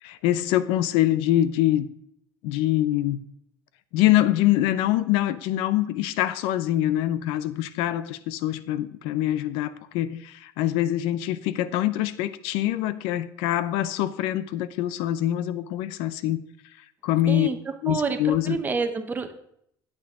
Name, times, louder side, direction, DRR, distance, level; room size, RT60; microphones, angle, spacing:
voice 1, 0.0-1.9 2.4-3.2 3.9-16.4 17.0-17.5 17.8-18.6, left 13 dB, 85° left, 14 dB, 0.6 m, -24 dB
voice 2, 17.9-19.3, right 5 dB, 20° right, 8 dB, 0.8 m, -28 dB
8.9 x 8.6 x 3.6 m, 0.71 s
cardioid pair, 155°, 9 cm